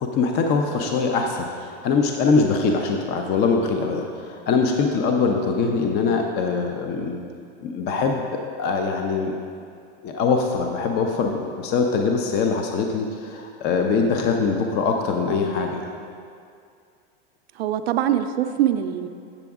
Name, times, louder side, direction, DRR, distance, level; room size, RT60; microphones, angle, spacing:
voice 1, 0.0-7.2 7.6-9.3 10.0-15.9, left 4 dB, 35° left, 3 dB, 0.5 m, -23 dB
voice 2, 17.6-19.1, right 10 dB, 90° right, 8 dB, 0.5 m, -23 dB
8.2 x 6.9 x 3.6 m, 2.4 s
supercardioid pair, 135°, 30 cm